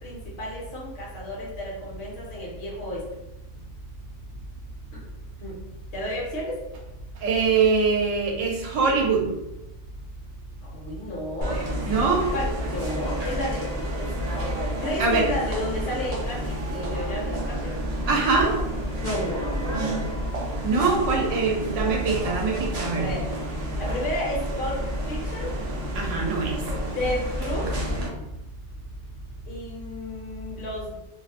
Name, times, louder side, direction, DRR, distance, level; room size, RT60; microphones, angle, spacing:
voice 1, 0.0-3.1 4.9-5.0 5.4-5.6 5.9-6.6 10.6-11.6 12.3-13.9 14.8-17.8 19.0-20.0 21.7-22.1 22.9-23.3 23.8-25.6 27.0-27.7 29.5-31.1, left 1 dB, 60° left, -4 dB, 0.9 m, -32 dB
voice 2, 7.2-9.3 11.8-12.3 15.0-15.3 18.1-18.6 20.6-23.1 25.9-26.6, right 4 dB, 85° right, 0 dB, 1.0 m, -23 dB
sound 1, 11.4-28.1, equal, 50° right, 0.4 m, -30 dB
2.5 x 2.0 x 2.7 m, 0.95 s
omnidirectional pair, 1.2 m